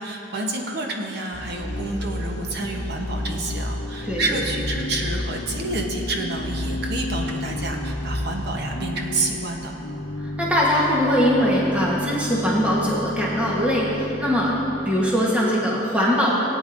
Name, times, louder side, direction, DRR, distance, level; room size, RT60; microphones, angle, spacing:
voice 1, 0.0-9.8, right 2 dB, 60° right, 1 dB, 0.9 m, -29 dB
sound 1, 1.3-8.6, left 1 dB, 35° left, 1.3 m, -31 dB
Organ / Church bell, 1.4-15.6, left 2 dB, 85° left, 0.7 m, -34 dB
voice 2, 4.0-4.4 10.2-16.3, equal, 10° right, -5 dB, 1.1 m, -21 dB
18.0 x 9.2 x 2.6 m, 3.0 s
head